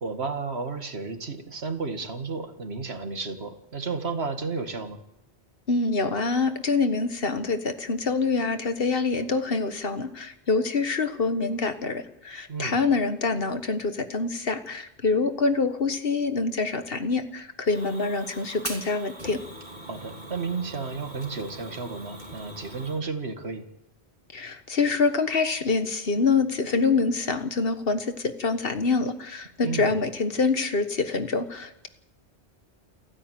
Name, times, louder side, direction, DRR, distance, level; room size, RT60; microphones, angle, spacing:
voice 1, 0.0-5.0 12.5-12.8 19.9-23.7 29.6-30.0, right 4 dB, 75° right, 7 dB, 2.1 m, -32 dB
voice 2, 5.7-19.4 24.3-31.9, left 4 dB, 60° left, 9 dB, 1.7 m, -26 dB
Fire, 17.7-23.0, right 1 dB, 45° right, 3.4 m, -41 dB
29.0 x 9.9 x 9.3 m, 0.88 s
omnidirectional pair, 1.1 m